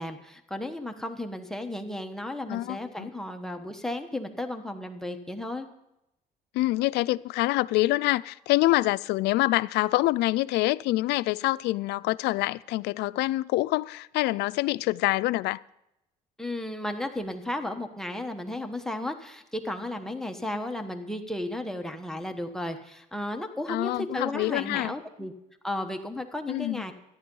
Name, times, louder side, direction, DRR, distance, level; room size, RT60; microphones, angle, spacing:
voice 1, 0.0-5.7 16.4-25.3 25.6-26.9, left 1 dB, 5° left, 1.1 m, -34 dB
voice 2, 2.5-3.1 6.5-15.6 23.7-24.9 26.5-26.8, left 18 dB, 85° left, 0.4 m, -26 dB
13.5 x 11.0 x 5.5 m
cardioid pair, 110°, 17 cm